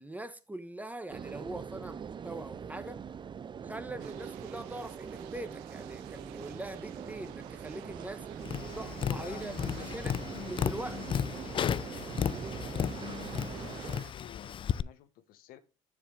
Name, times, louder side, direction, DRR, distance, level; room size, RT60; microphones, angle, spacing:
voice 1, 0.0-3.0 3.6-8.3 8.7-11.2, right 1 dB, 10° right, 1.1 m, -42 dB
sound 1, 1.1-14.0, right 7 dB, 30° right, 0.5 m, -43 dB
sound 2, 4.0-14.1, right 15 dB, 75° right, 0.7 m, -51 dB
Tap, 8.4-14.8, left 8 dB, 35° left, 0.4 m, -34 dB
voice 2, 8.8-10.3 12.7-15.6, left 11 dB, 65° left, 1.0 m, -53 dB
7.2 x 7.1 x 3.3 m
hypercardioid pair, 70°, 16 cm